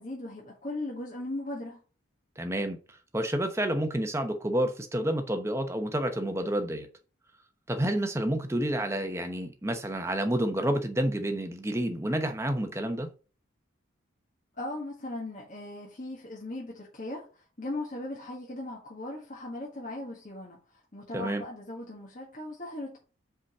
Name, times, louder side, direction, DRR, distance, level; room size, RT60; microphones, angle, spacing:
voice 1, 0.0-1.8 14.6-20.6 20.9-23.0, left 1 dB, 40° left, 1.7 m, -38 dB
voice 2, 2.4-6.9 7.7-13.1 21.1-21.4, right 1 dB, 15° right, 0.9 m, -29 dB
5.1 x 5.1 x 6.1 m
head